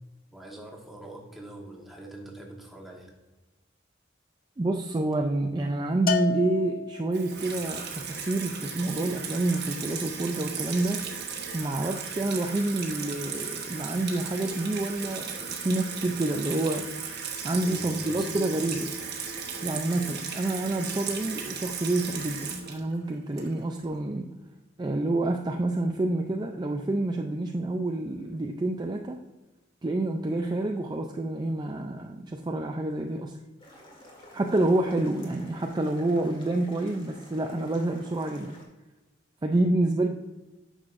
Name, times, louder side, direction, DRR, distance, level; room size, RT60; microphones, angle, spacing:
voice 1, 0.3-3.1 17.5-18.4, right 2 dB, ahead, -1 dB, 1.3 m, -44 dB
voice 2, 4.6-11.0 11.5-16.9 17.4-18.9 19.6-24.3 24.8-29.2 29.8-33.3 34.3-38.5 39.4-40.1, right 2 dB, 20° right, 3 dB, 0.4 m, -28 dB
Bell, 6.1-7.4, left 5 dB, 50° left, 0.5 m, -30 dB
Water tap faucet / Sink (filling or washing), 7.1-23.8, right 6 dB, 60° right, 1.2 m, -36 dB
sound 1, 33.6-38.6, left 1 dB, 30° left, 1.8 m, -51 dB
9.5 x 6.4 x 2.5 m, 1.1 s
head